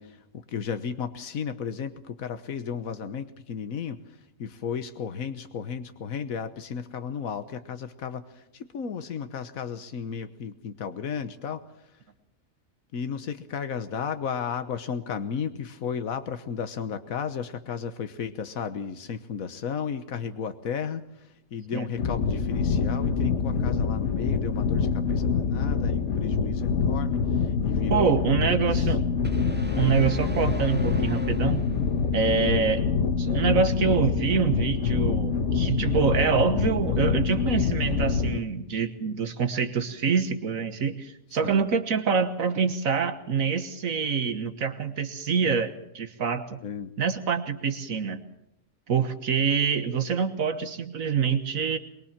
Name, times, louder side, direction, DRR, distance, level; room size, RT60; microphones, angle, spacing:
voice 1, 0.0-4.0 4.4-11.6 12.9-28.9 29.7-30.0 41.4-41.7 46.6-46.9, left 7 dB, 85° left, 9 dB, 1.6 m, -34 dB
sound 1, 22.0-38.4, left 5 dB, 60° left, 1.4 m, -26 dB
voice 2, 27.9-29.0 29.8-31.6 32.1-32.9 33.2-46.6 47.0-48.2 48.9-51.8, right 6 dB, 80° right, 9 dB, 1.7 m, -26 dB
sound 2, 29.2-32.2, right 1 dB, 5° right, 1.8 m, -37 dB
24.0 x 22.0 x 7.4 m, 0.79 s
omnidirectional pair, 1.4 m